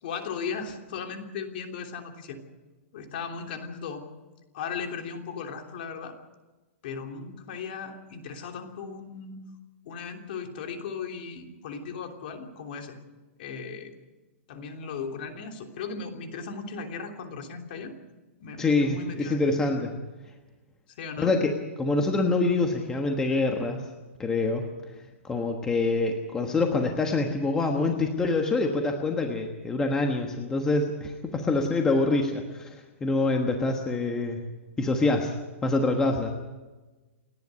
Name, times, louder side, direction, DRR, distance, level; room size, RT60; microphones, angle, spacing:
voice 1, 0.0-2.4 2.9-4.0 4.5-6.1 6.8-9.4 9.8-13.0 13.4-13.9 14.5-17.9 18.4-19.4 20.9-21.4, left 5 dB, 45° left, 4 dB, 3.2 m, -37 dB
voice 2, 18.6-19.9 21.2-21.5 21.8-23.8 24.2-24.6 25.2-34.4 34.8-35.3 35.6-36.3, left 3 dB, 10° left, 3 dB, 1.3 m, -25 dB
29.5 x 10.5 x 9.5 m, 1.2 s
hypercardioid pair, 165°, 7 cm